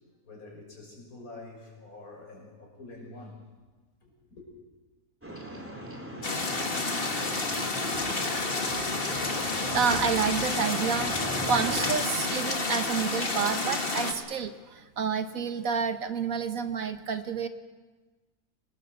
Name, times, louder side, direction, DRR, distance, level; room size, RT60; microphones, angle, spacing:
voice 1, 0.2-3.4 4.0-4.5, left 2 dB, 65° left, 0 dB, 6.7 m, -46 dB
sound 1, 5.2-11.9, right 1 dB, 10° right, 3.3 m, -38 dB
sound 2, 6.2-14.1, left 3 dB, 40° left, 2.1 m, -30 dB
voice 2, 7.9-8.3 9.7-17.5, right 6 dB, 65° right, 10 dB, 1.5 m, -29 dB
24.5 x 20.0 x 7.9 m, 1.3 s
omnidirectional pair, 1.6 m